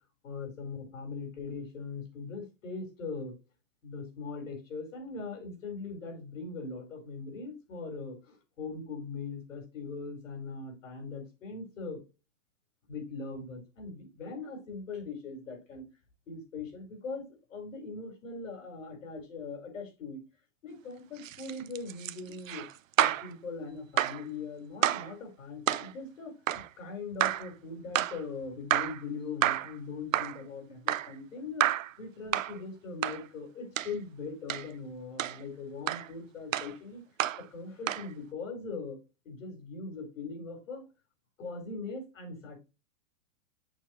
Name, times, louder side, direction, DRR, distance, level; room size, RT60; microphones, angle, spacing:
voice 1, 0.2-3.3 3.8-12.0 12.9-15.8 16.3-17.2 17.5-20.2 20.6-22.7 23.0-31.7 32.0-37.0 37.4-39.0 39.2-40.8 41.4-42.6, left 4 dB, 80° left, 4 dB, 4.7 m, -40 dB
sound 1, 21.2-23.3 24.0-24.2 24.8-25.1 25.7-25.9 26.5-26.7 27.2-27.5 28.0-28.2 28.7-29.0 29.4-29.8 30.1-30.4 30.9-31.1 31.6-31.9 32.3-32.6 33.0-33.2 33.8-33.9 34.5-34.7 35.2-35.4 35.9-36.1 36.5-36.7 37.2-37.4 37.9-38.1, right 12 dB, 90° right, 0.7 m, -29 dB
8.5 x 6.4 x 3.1 m, 0.29 s
hypercardioid pair, 145°, 39 cm